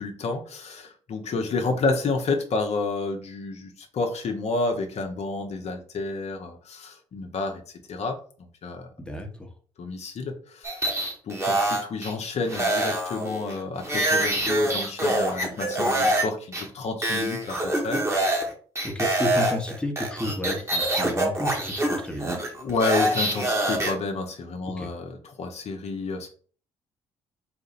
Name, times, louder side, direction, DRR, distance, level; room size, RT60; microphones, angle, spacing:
voice 1, 0.0-7.6 7.9-8.9 9.8-10.9 11.2-18.0 22.6-26.3, left 3 dB, 50° left, 3 dB, 0.9 m, -30 dB
voice 2, 9.0-9.5 18.8-22.3 24.7-24.9, left 1 dB, 5° left, 2 dB, 1.2 m, -32 dB
sound 1, 10.6-12.1 12.5-16.3 16.5-16.6 17.0-18.5 18.8-23.9, right 1 dB, 20° right, 1.7 m, -25 dB
4.2 x 2.6 x 4.1 m, 0.43 s
hypercardioid pair, 45°, 14 cm